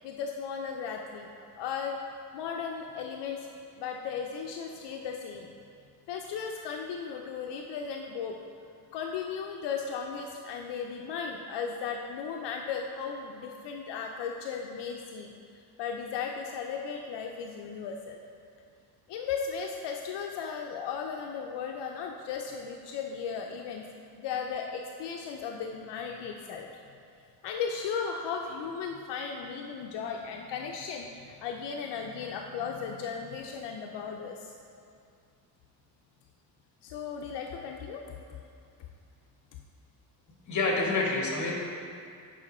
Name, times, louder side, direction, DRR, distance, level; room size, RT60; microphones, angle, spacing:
voice 1, 0.0-1.3 1.6-2.0 2.3-3.5 3.8-5.5 6.1-8.4 8.9-15.3 15.8-18.2 19.1-23.9 24.2-26.7 27.4-34.5 36.8-38.0, left 6 dB, 80° left, 2 dB, 0.6 m, -36 dB
voice 2, 40.5-41.5, left 3 dB, 45° left, -1 dB, 1.4 m, -27 dB
7.4 x 5.0 x 4.2 m, 2.4 s
cardioid pair, 145°, 41 cm